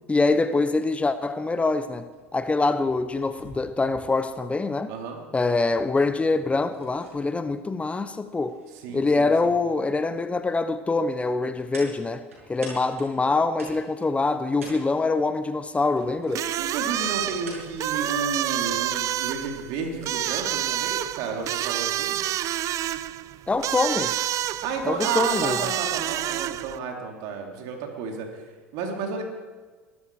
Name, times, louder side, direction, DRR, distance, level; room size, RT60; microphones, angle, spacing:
voice 1, 0.1-4.9 5.3-8.6 8.9-16.4 23.5-24.2 24.8-25.6, left 3 dB, 15° left, 11 dB, 1.0 m, -24 dB
sound 1, 2.1-18.6, right 2 dB, 85° right, 6.4 m, -48 dB
voice 2, 4.9-5.2 8.7-9.5 16.3-22.2 24.6-28.4 28.7-29.2, right 5 dB, 60° right, 2 dB, 3.3 m, -32 dB
sound 2, 16.3-26.8, right 13 dB, 45° right, 0.6 m, -28 dB
22.5 x 13.0 x 4.9 m, 1.4 s
hypercardioid pair, 75°, 7 cm